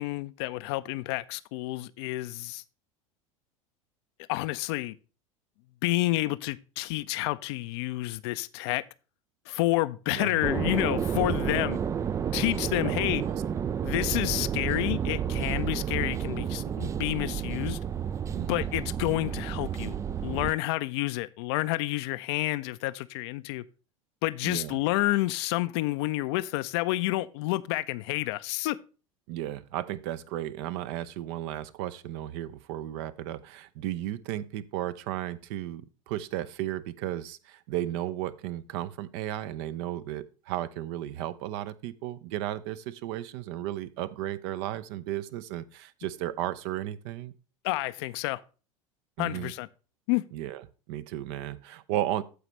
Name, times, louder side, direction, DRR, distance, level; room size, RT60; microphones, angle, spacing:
voice 1, 0.0-2.6 4.3-5.0 5.8-8.8 9.5-11.8 12.3-13.2 13.8-17.8 18.5-20.0 20.2-23.6 24.2-28.8 47.6-48.4 49.2-49.7 50.1-50.2, left 18 dB, 50° left, 0.6 m, -29 dB
voice 2, 10.1-10.5 12.8-13.4 18.3-18.7 24.4-24.8 29.3-47.3 49.2-49.5 50.3-50.6 50.9-52.2, right 13 dB, 50° right, 0.7 m, -34 dB
sound 1, 10.4-20.5, right 8 dB, 20° right, 0.3 m, -31 dB
14.5 x 4.9 x 3.2 m
figure-of-eight pair, 75°, 17 cm